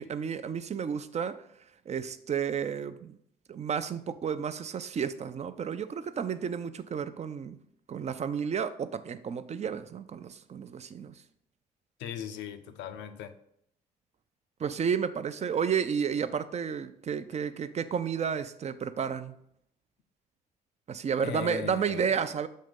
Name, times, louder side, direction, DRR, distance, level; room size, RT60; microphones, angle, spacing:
voice 1, 0.0-1.4 1.9-3.2 3.5-7.6 7.9-11.2 14.6-19.4 20.9-22.5, right 7 dB, 35° right, 12 dB, 0.5 m, -32 dB
voice 2, 12.0-13.3 21.2-22.1, left 8 dB, 65° left, 8 dB, 0.6 m, -38 dB
6.5 x 2.9 x 5.2 m, 0.71 s
hypercardioid pair, 50°, 20 cm